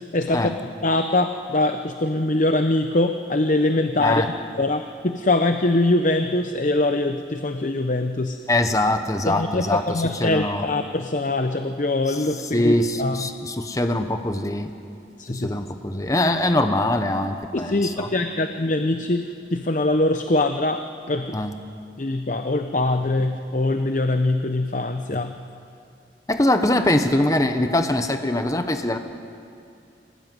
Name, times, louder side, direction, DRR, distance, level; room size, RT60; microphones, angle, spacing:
voice 1, 0.1-4.2 4.6-8.4 9.2-13.3 15.3-15.5 17.5-20.8 21.1-21.4 22.0-25.3, left 2 dB, 45° left, 7 dB, 0.8 m, -23 dB
voice 2, 8.5-10.6 12.1-12.2 12.5-14.7 15.3-18.1 21.3-21.5 26.3-29.0, left 1 dB, 20° left, 7 dB, 1.0 m, -22 dB
25.0 x 19.0 x 9.3 m, 2.5 s
head